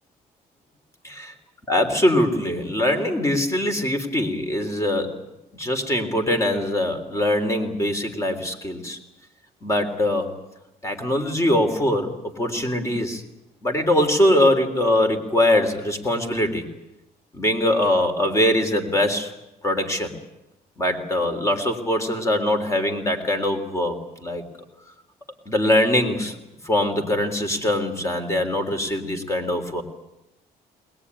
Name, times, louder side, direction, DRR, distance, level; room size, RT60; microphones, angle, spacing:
voice 1, 1.7-5.2 5.5-9.0 9.6-10.3 10.8-13.2 13.6-16.7 17.3-19.3 19.6-20.1 20.8-24.4 25.5-26.4 26.6-29.8, left 1 dB, 20° left, 6 dB, 3.4 m, -22 dB
21.0 x 20.0 x 9.7 m, 0.94 s
cardioid pair, 135°, 16 cm